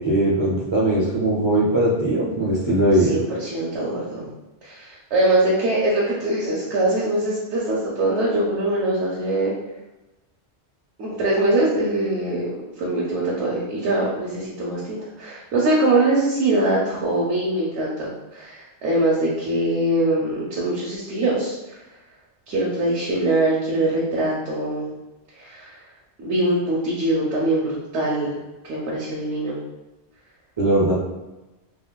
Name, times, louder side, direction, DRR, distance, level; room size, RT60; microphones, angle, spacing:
voice 1, 0.1-3.1 30.6-30.9, right 1 dB, 35° right, -7 dB, 0.5 m, -20 dB
voice 2, 3.0-4.3 4.6-9.5 11.0-12.5 12.8-21.8 22.5-24.9 25.4-25.8 26.2-28.4 28.6-29.6, right 1 dB, 90° right, -5 dB, 1.0 m, -23 dB
2.8 x 2.8 x 2.2 m, 1.0 s
omnidirectional pair, 1.1 m